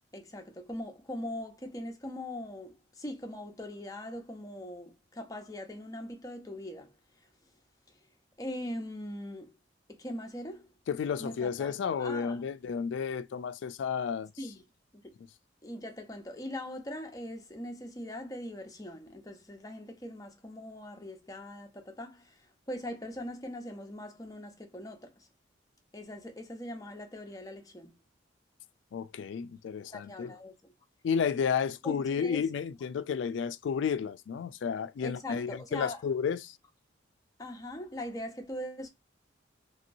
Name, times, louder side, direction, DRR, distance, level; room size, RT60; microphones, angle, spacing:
voice 1, 0.1-6.9 8.4-9.6 9.9-10.7 11.2-12.4 14.4-14.6 15.0-15.1 15.6-25.3 25.9-27.9 29.9-30.7 31.8-32.4 35.0-36.0 37.4-38.9, left 1 dB, 20° left, 0.7 m, -41 dB
voice 2, 10.9-14.3 28.9-30.3 31.0-36.6, left 6 dB, 70° left, 0.3 m, -32 dB
3.0 x 2.9 x 2.5 m
head